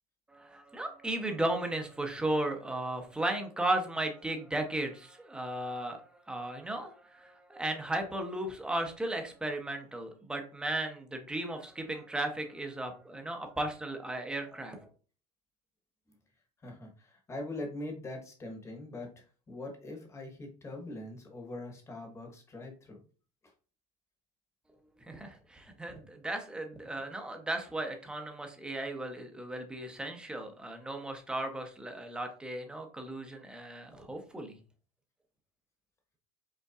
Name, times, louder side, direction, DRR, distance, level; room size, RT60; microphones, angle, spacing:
voice 1, 0.3-14.8 25.1-34.5, right 1 dB, 5° right, 4 dB, 0.6 m, -35 dB
voice 2, 16.6-23.0, left 2 dB, 15° left, 2 dB, 1.0 m, -42 dB
5.4 x 3.6 x 2.4 m, 0.38 s
cardioid pair, 160°, 20 cm